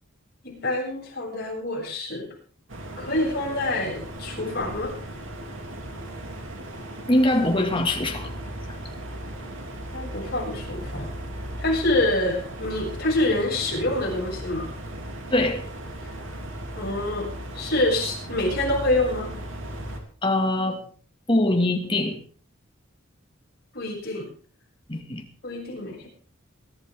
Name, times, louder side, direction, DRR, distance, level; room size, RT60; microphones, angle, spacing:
voice 1, 0.4-2.3 3.0-4.9 9.9-11.1 11.6-14.7 16.8-17.3 17.5-19.3 23.7-24.3 25.4-26.1, left 1 dB, 50° left, -2 dB, 7.0 m, -26 dB
sound 1, 2.7-20.0, right 1 dB, 70° right, 3.1 m, -36 dB
voice 2, 7.1-8.3 15.3-15.6 20.2-20.8 21.3-22.2 24.9-25.2, left 1 dB, 25° left, 4 dB, 2.2 m, -22 dB
23.5 x 11.5 x 3.7 m, 0.41 s
head